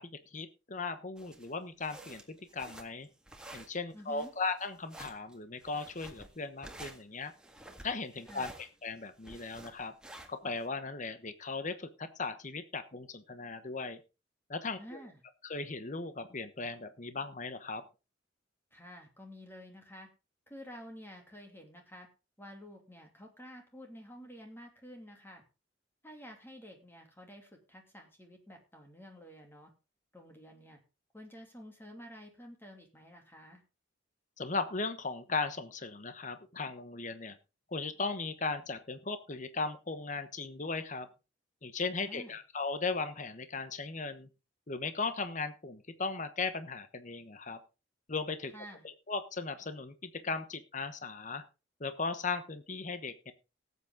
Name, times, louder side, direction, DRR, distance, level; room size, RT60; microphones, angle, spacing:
voice 1, 0.0-3.1 3.5-7.3 7.8-9.9 10.3-14.0 14.5-14.8 15.4-17.8 34.4-37.4 37.7-41.1 41.6-44.3 44.7-47.6 48.1-48.5 48.8-51.4 51.8-53.3, left 4 dB, 40° left, 10 dB, 1.1 m, -37 dB
sound 1, 1.2-10.6, right 1 dB, 5° right, 1.8 m, -51 dB
voice 2, 3.9-4.3 8.3-8.5 14.8-15.2 18.7-20.1 20.5-22.1 22.4-25.4 26.0-29.7 30.1-30.8 31.1-33.6 42.0-42.4 48.5-48.9, equal, 10° left, 3 dB, 2.8 m, -50 dB
18.0 x 8.4 x 3.8 m, 0.30 s
head